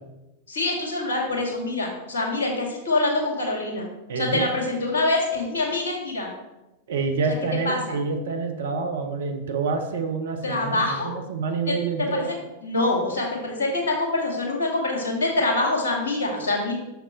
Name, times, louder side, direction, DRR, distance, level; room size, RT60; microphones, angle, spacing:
voice 1, 0.5-3.9 4.2-6.3 7.6-8.0 10.4-11.1 11.7-12.2 12.6-16.8, left 2 dB, 65° left, 0 dB, 2.0 m, -25 dB
voice 2, 4.1-4.5 6.9-12.3, right 4 dB, 60° right, 5 dB, 1.0 m, -27 dB
6.8 x 5.8 x 4.3 m, 0.97 s
figure-of-eight pair, 90°, 0 cm